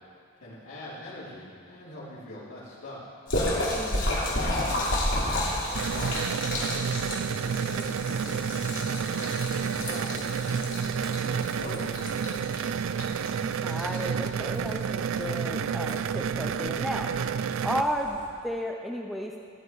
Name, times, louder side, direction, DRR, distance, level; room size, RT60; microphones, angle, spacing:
voice 1, 0.4-3.0 4.0-6.8 7.3-8.6 9.0-12.4 17.9-18.2, left 1 dB, 85° left, -12 dB, 3.8 m, -43 dB
Splash splatter, 3.3-18.3, left 1 dB, 60° left, 2.8 m, -33 dB
voice 2, 3.7-4.2 13.6-17.1 17.6-19.4, equal, ahead, 1 dB, 0.6 m, -33 dB
sound 1, 5.8-17.8, right 7 dB, 60° right, 0.4 m, -30 dB
16.5 x 9.6 x 4.7 m, 2.2 s
head